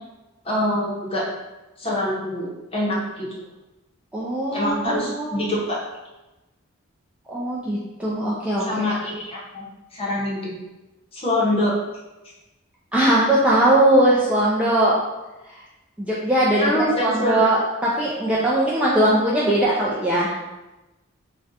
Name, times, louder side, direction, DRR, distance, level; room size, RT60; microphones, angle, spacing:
voice 1, 0.4-1.2 1.8-3.3 4.5-5.8 8.6-9.7 9.9-10.5 11.1-11.7 16.6-17.4, left 1 dB, 25° left, -5 dB, 0.7 m, -24 dB
voice 2, 4.1-5.5 7.3-8.8 12.9-14.9 16.0-16.7 17.0-17.6 18.0-20.3, right 1 dB, 5° right, -7 dB, 0.3 m, -20 dB
2.4 x 2.2 x 3.9 m, 1.0 s
head